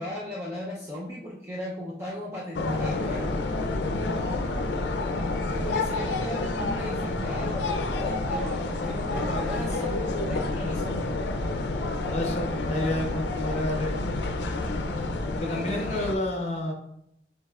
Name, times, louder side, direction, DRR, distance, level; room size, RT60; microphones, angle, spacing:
voice 1, 0.0-3.4 5.5-11.1 15.4-16.1, left 1 dB, 15° right, -6 dB, 0.5 m, -36 dB
sound 1, 2.5-16.2, left 3 dB, 80° left, 0.5 m, -29 dB
sound 2, 2.9-15.4, equal, 80° right, 1.4 m, -37 dB
voice 2, 12.1-14.0 15.3-16.7, left 1 dB, 35° left, 2 dB, 0.8 m, -30 dB
7.1 x 2.8 x 2.3 m, 0.76 s
head